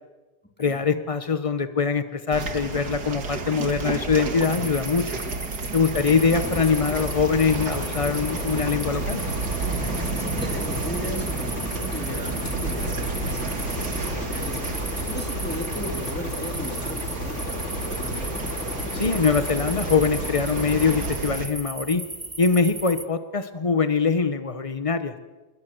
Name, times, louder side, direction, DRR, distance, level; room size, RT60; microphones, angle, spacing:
voice 1, 0.6-5.1 5.7-9.2 18.9-22.0 22.4-25.1, left 5 dB, 60° left, 11 dB, 0.3 m, -23 dB
sound 1, 2.3-21.5, right 3 dB, 50° right, 2.4 m, -32 dB
sound 2, 4.4-23.0, right 2 dB, 20° right, 0.5 m, -37 dB
sound 3, 5.7-21.5, left 1 dB, 35° left, 3.4 m, -33 dB
voice 2, 9.9-18.5, left 1 dB, 5° left, 3 dB, 3.3 m, -37 dB
27.5 x 21.0 x 7.8 m, 1.2 s
omnidirectional pair, 2.3 m